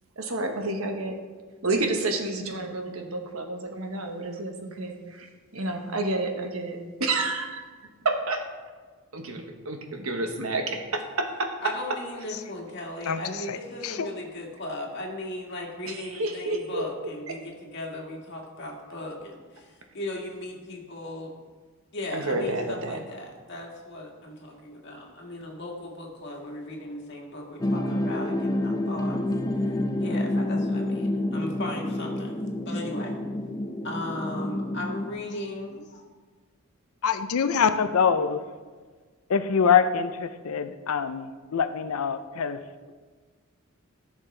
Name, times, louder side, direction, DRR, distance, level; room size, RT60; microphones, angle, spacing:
voice 1, 0.2-1.1 1.6-5.3 5.5-7.6 8.0-8.4 9.1-11.5 15.9-16.8 22.1-23.0, right 2 dB, 75° right, 4 dB, 1.2 m, -30 dB
voice 2, 11.6-21.3 21.9-29.2 29.6-32.4 32.7-33.1 33.8-36.0, left 1 dB, 55° left, -1 dB, 1.9 m, -37 dB
sound 1, 27.6-35.1, left 1 dB, 15° left, 0.5 m, -28 dB
voice 3, 37.0-38.4 39.3-42.6, left 6 dB, 80° left, 10 dB, 0.5 m, -24 dB
15.0 x 6.4 x 3.3 m, 1.4 s
head